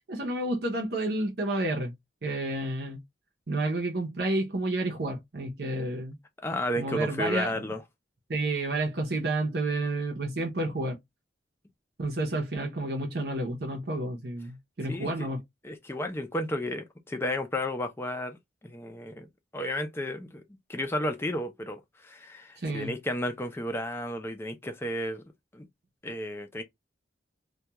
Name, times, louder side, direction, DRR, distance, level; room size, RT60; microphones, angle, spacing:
voice 1, 0.1-1.9 2.2-3.0 3.5-6.2 6.8-7.6 8.3-11.0 12.0-15.4 22.6-22.9, right 2 dB, 60° right, 0.7 m, -30 dB
voice 2, 6.4-7.8 14.9-15.3 15.6-18.4 18.6-19.3 19.5-20.4 20.7-25.2 25.5-25.7 26.0-26.6, left 1 dB, 15° left, 0.4 m, -32 dB
2.3 x 2.3 x 2.8 m
head